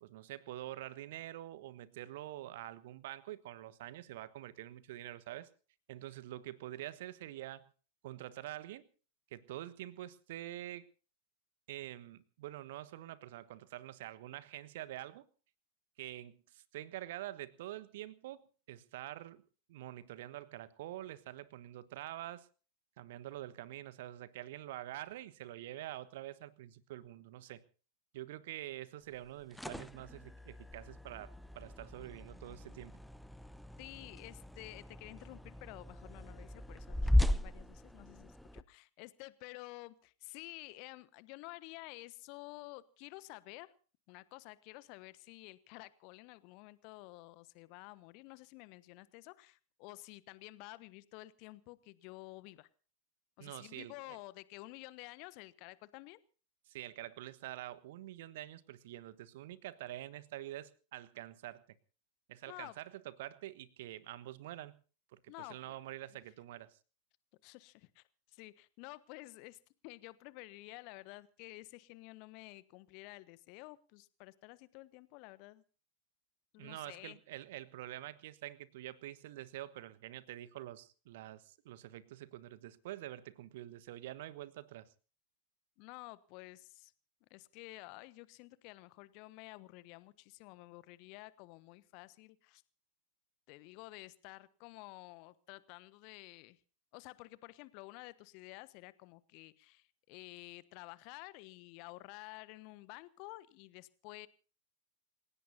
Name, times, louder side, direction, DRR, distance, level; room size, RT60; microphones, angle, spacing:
voice 1, 0.0-5.5 5.9-7.7 8.0-8.9 9.3-10.9 11.7-15.3 16.0-18.4 18.7-19.4 19.7-22.5 23.0-27.6 28.1-33.0 53.4-54.2 56.7-61.6 62.3-64.8 65.1-66.8 76.6-84.9, right 14 dB, 55° right, 16 dB, 1.3 m, -46 dB
sound 1, 29.2-38.6, left 1 dB, ahead, 0.7 m, -37 dB
voice 2, 33.8-43.7 44.1-52.7 53.4-56.2 62.5-62.7 65.3-65.7 67.4-75.6 76.5-77.2 85.8-86.9 87.3-92.6 93.5-96.6 96.9-104.3, left 21 dB, 45° left, 17 dB, 1.2 m, -51 dB
28.5 x 17.0 x 2.7 m, 0.39 s
figure-of-eight pair, 90°, 0 cm